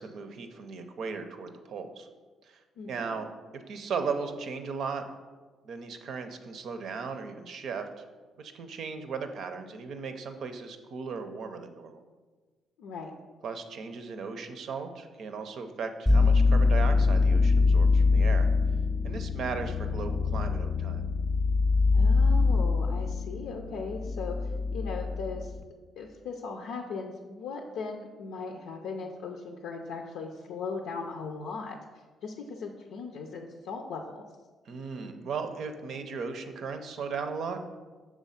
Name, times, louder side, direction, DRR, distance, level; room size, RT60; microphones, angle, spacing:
voice 1, 0.0-2.1 2.4-2.6 2.9-5.0 5.6-8.0 8.4-12.0 13.4-18.5 19.0-21.0 34.6-37.8, right 5 dB, 70° right, 7 dB, 0.6 m, -37 dB
voice 2, 2.8-3.2 12.8-13.1 21.9-25.5 26.0-31.8 32.2-34.2, left 4 dB, 90° left, 2 dB, 0.5 m, -38 dB
sound 1, 16.1-25.6, left 4 dB, 5° left, 0.5 m, -24 dB
6.3 x 3.5 x 5.7 m, 1.4 s
cardioid pair, 90°, 0 cm